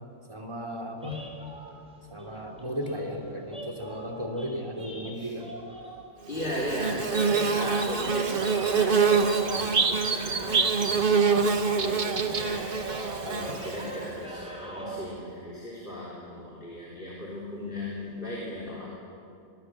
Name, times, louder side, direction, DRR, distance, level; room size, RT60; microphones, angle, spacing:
voice 1, 0.3-1.2 2.1-5.5, equal, 20° right, 1 dB, 3.2 m, -35 dB
sound 1, 1.0-6.1 6.4-10.9 11.1-15.0, right 1 dB, 5° right, 4.6 m, -41 dB
voice 2, 6.3-18.9, left 1 dB, 40° left, -5 dB, 4.0 m, -37 dB
Bird / Buzz, 6.3-14.0, right 5 dB, 45° right, 1.3 m, -25 dB
24.5 x 20.0 x 7.7 m, 2.6 s
omnidirectional pair, 1.4 m